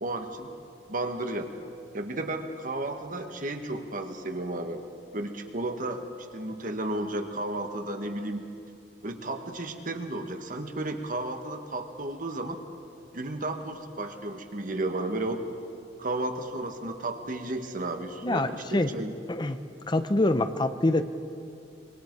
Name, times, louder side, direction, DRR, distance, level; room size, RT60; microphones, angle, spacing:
voice 1, 0.0-0.5 0.9-1.5 1.9-4.8 5.1-6.0 6.3-8.5 9.0-12.6 13.1-15.4 16.0-19.1, right 2 dB, 50° right, 5 dB, 1.6 m, -33 dB
voice 2, 18.2-18.9 19.3-19.6 19.9-21.0, left 2 dB, 25° left, 10 dB, 0.7 m, -25 dB
26.5 x 23.5 x 4.7 m, 2.5 s
head